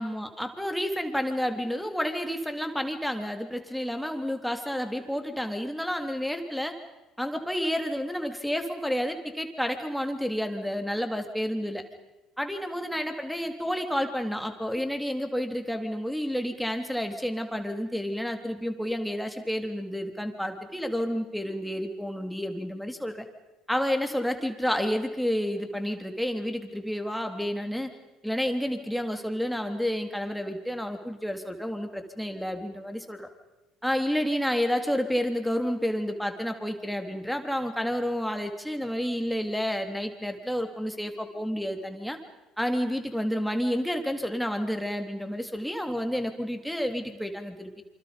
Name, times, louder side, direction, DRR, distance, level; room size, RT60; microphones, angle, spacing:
voice 1, 0.0-6.7 7.2-11.8 12.4-23.2 23.7-28.0 28.2-33.3 33.8-42.2 42.6-47.8, equal, ahead, 5 dB, 3.4 m, -30 dB
27.5 x 26.5 x 5.3 m, 1.0 s
hypercardioid pair, 60°, 0 cm